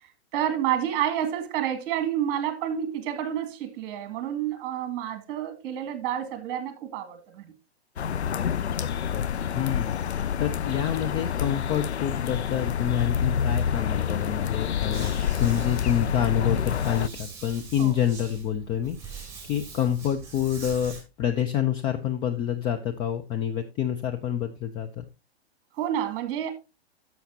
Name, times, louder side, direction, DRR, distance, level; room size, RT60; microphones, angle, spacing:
voice 1, 0.3-7.5 17.8-18.0 25.8-26.5, right 10 dB, 35° right, 2.0 m, -29 dB
sound 1, 8.0-17.1, left 8 dB, 90° left, 0.5 m, -27 dB
voice 2, 8.8-9.2 9.5-15.1 15.4-25.0, left 10 dB, 15° left, 0.4 m, -28 dB
sound 2, 14.9-21.0, right 5 dB, 10° right, 4.3 m, -43 dB
11.5 x 7.1 x 2.7 m
figure-of-eight pair, 115°, 32 cm